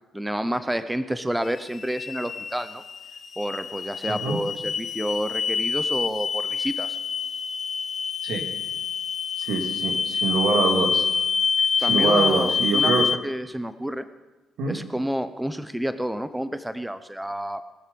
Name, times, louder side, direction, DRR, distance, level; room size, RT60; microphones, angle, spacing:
voice 1, 0.1-2.8 3.4-7.0 11.8-12.9 13.2-14.1 14.7-17.7, equal, 5° right, 11 dB, 0.7 m, -29 dB
sound 1, 1.4-13.1, left 6 dB, 45° left, 0.7 m, -26 dB
voice 2, 4.1-4.4 8.2-8.5 9.4-11.1 11.8-13.1 14.6-14.8, right 4 dB, 85° right, 3 dB, 2.0 m, -24 dB
22.0 x 7.4 x 5.2 m, 1.1 s
cardioid pair, 90°, 0 cm